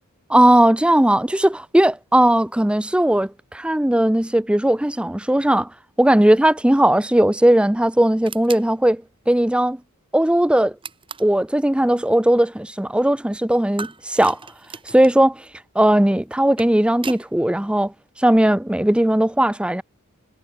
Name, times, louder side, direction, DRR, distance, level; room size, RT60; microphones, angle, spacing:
voice 1, 0.3-5.7 6.0-9.8 10.1-10.7 11.2-14.4 14.9-15.4 15.8-17.9 18.2-19.8, right 1 dB, 5° right, 0.4 m, -17 dB
sound 1, 8.2-8.7 10.8-11.4 13.8-15.2 16.3-17.3, right 5 dB, 25° right, 1.8 m, -36 dB
head